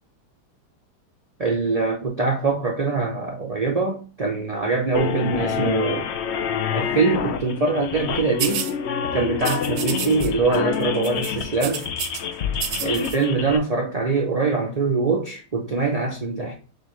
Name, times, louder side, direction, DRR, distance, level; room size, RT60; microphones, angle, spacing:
voice 1, 1.4-6.1 6.7-8.7 9.1-11.8 12.8-16.6, right 4 dB, 55° right, 0.4 m, -23 dB
sound 1, 4.9-13.6, left 7 dB, 65° left, 0.6 m, -27 dB
sound 2, 8.4-8.7 9.4-10.3 10.5-10.8 11.0-12.2 12.5-13.2, right 8 dB, 80° right, 1.3 m, -29 dB
6.6 x 2.5 x 3.0 m
omnidirectional pair, 1.7 m